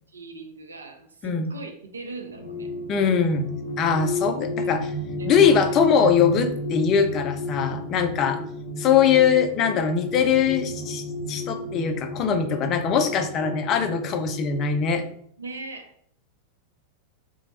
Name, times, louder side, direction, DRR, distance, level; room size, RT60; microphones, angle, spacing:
voice 1, 0.1-2.7 4.0-5.8 8.2-8.6 15.4-15.9, right 3 dB, 75° right, 4 dB, 0.4 m, -41 dB
sound 1, 2.1-14.9, left 1 dB, 5° left, 0.8 m, -32 dB
voice 2, 2.9-3.5 3.8-4.9 5.2-8.4 8.8-15.0, left 7 dB, 35° left, 7 dB, 0.3 m, -22 dB
2.9 x 2.0 x 2.9 m, 0.62 s
figure-of-eight pair, 90°, 0 cm